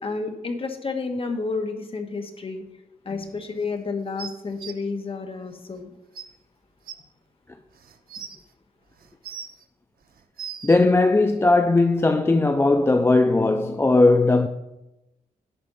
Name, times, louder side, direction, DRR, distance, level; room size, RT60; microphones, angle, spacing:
voice 1, 0.0-2.7 3.0-5.9, left 4 dB, 35° left, 1.3 m, -30 dB
sound 1, 4.2-4.7 5.8-5.9 6.1-6.2 6.9-7.0 7.7-8.4 9.0-9.6 10.1-10.8 11.8-11.9, right 8 dB, 75° right, 0.8 m, -37 dB
voice 2, 10.6-14.5, left 2 dB, 15° left, 0.4 m, -18 dB
11.0 x 4.3 x 6.9 m
wide cardioid pair, 125°, 15 cm